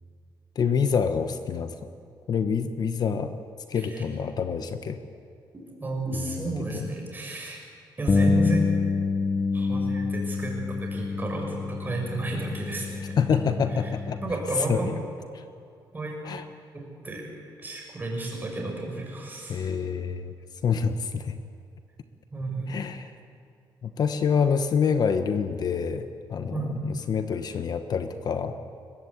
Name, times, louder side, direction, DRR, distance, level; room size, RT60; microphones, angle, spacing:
voice 1, 0.5-1.8 2.3-3.3 3.7-5.0 6.2-6.9 13.2-14.2 14.7-15.0 15.3-15.4 16.2-16.4 19.5-20.3 20.6-21.4 22.7-23.1 23.8-28.6, left 6 dB, 55° left, 9 dB, 1.1 m, -27 dB
voice 2, 5.5-7.6 8.0-8.6 9.5-10.5 10.8-13.2 14.2-14.9 15.9-16.1 16.7-17.3 17.6-19.7 22.3-22.8 26.5-26.9, right 2 dB, 25° right, 0 dB, 6.3 m, -32 dB
Bass guitar, 8.1-14.3, left 4 dB, 30° left, 1.2 m, -27 dB
22.0 x 21.5 x 8.5 m, 2.5 s
cardioid pair, 130°, 8 cm